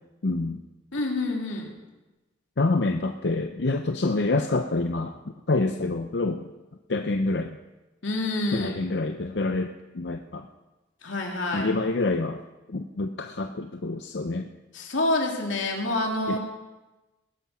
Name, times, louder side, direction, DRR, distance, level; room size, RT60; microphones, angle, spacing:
voice 1, 0.2-0.6 2.6-5.2 5.5-6.5 6.9-7.6 8.5-10.5 11.5-12.4 12.7-14.5 16.3-16.4, left 2 dB, 60° left, 6 dB, 0.7 m, -27 dB
voice 2, 0.9-1.7 8.0-8.7 11.0-11.7 14.7-16.4, left 2 dB, 85° left, 0 dB, 3.0 m, -27 dB
19.5 x 10.5 x 5.7 m, 1.1 s
head